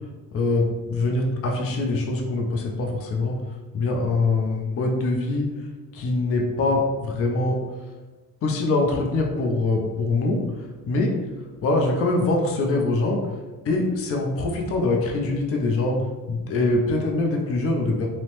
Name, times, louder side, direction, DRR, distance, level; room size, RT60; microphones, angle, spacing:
voice 1, 0.3-3.4 3.7-5.5 5.9-7.6 8.4-11.2 11.6-13.2 13.6-16.0 16.3-18.1, left 2 dB, 50° left, 1 dB, 0.5 m, -23 dB
2.7 x 2.0 x 3.0 m, 1.2 s
cardioid pair, 90°, 30 cm